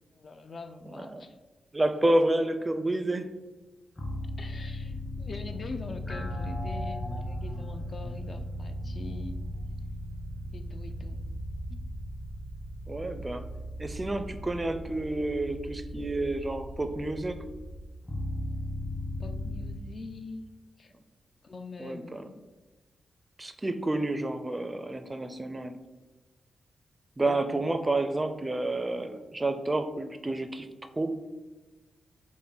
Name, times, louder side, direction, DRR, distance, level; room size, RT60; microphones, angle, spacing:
voice 1, 0.1-1.4 4.4-9.4 10.5-11.4 11.7-11.9 19.2-20.5 20.8-20.9 21.4-22.4 27.2-27.7, left 3 dB, 50° left, 7 dB, 0.4 m, -44 dB
voice 2, 1.7-3.3 12.9-13.4 13.8-17.4 21.8-22.2 23.4-25.7 27.2-30.7 30.9-31.3, right 2 dB, 25° right, 9 dB, 0.4 m, -29 dB
sound 1, 4.0-19.8, left 1 dB, 25° left, 0.9 m, -37 dB
5.8 x 2.1 x 3.9 m, 1.2 s
cardioid pair, 60°, 0 cm